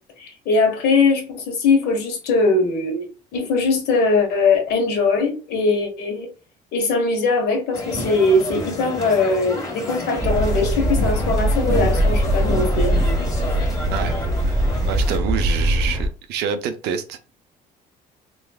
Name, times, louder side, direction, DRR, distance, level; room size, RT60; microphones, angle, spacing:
voice 1, 0.2-6.3 6.7-13.0, left 3 dB, 75° left, 1.4 m, -20 dB
sound 1, 7.7-15.2, left 2 dB, 20° left, 1.4 m, -29 dB
sound 2, 10.2-16.1, right 1 dB, 15° right, 0.8 m, -21 dB
voice 2, 14.4-17.3, right 8 dB, 85° right, 0.6 m, -27 dB
3.6 x 3.2 x 2.3 m
cardioid pair, 110°, 17 cm